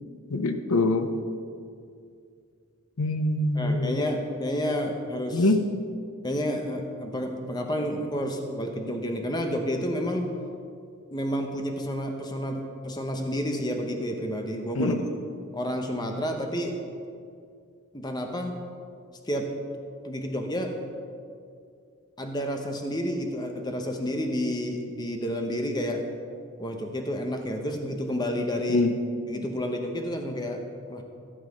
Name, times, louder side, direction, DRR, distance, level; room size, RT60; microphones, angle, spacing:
voice 1, 0.3-1.1 3.0-4.0 5.3-5.6 14.7-15.0 28.7-28.9, left 2 dB, 80° left, 8 dB, 0.7 m, -24 dB
voice 2, 3.5-5.4 6.2-10.3 11.1-15.0 15.5-16.8 17.9-18.5 19.3-19.5 20.0-20.7 22.2-26.0 26.6-28.8 29.3-30.6 30.9-31.0, equal, 20° left, 3 dB, 0.9 m, -30 dB
14.5 x 7.4 x 5.2 m, 2.3 s
head